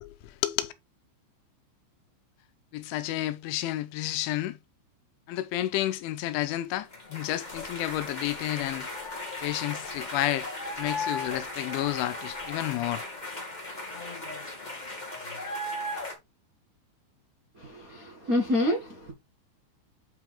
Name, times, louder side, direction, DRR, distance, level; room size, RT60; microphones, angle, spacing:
voice 1, 0.0-0.7 2.7-4.6 5.3-8.9 9.4-10.5 10.8-13.0, left 15 dB, 85° left, 3.1 m, -31 dB
sound 1, 6.9-16.1, left 2 dB, 55° left, 0.4 m, -36 dB
voice 2, 17.6-19.1, left 1 dB, 80° right, 0.8 m, -28 dB
8.8 x 4.6 x 3.5 m
omnidirectional pair, 5.4 m